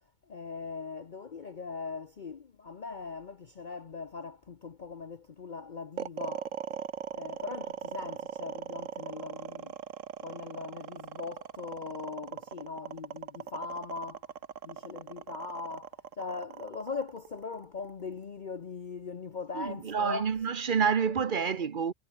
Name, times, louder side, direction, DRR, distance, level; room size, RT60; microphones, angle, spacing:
voice 1, 0.3-6.5 7.1-9.8 10.2-14.3 14.6-20.3, left 4 dB, 40° left, 0.9 m, -40 dB
sound 1, 6.0-18.2, right 8 dB, 75° right, 1.5 m, -40 dB
voice 2, 19.5-21.9, right 6 dB, 45° right, 0.9 m, -28 dB
omnidirectional pair, 1.4 m